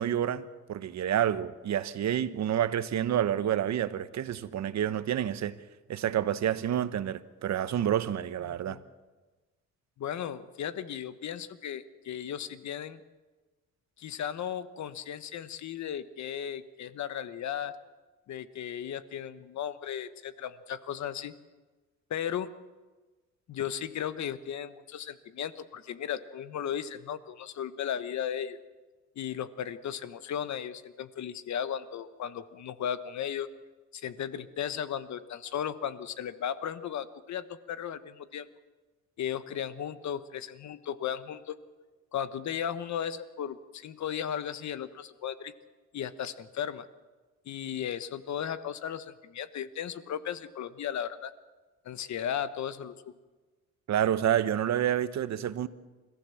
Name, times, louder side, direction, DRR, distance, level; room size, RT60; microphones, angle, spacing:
voice 1, 0.0-5.6 5.9-8.8 53.9-55.7, right 10 dB, 65° right, 1.1 m, -29 dB
voice 2, 8.5-8.8 10.0-13.0 14.0-17.8 18.3-21.3 22.1-22.5 23.5-28.6 29.2-33.5 33.9-38.5 39.2-41.6 42.1-45.5 45.9-46.9 47.5-51.3 51.8-52.9, left 9 dB, 65° left, 1.3 m, -35 dB
29.5 x 14.5 x 7.2 m
cardioid pair, 90°, 30 cm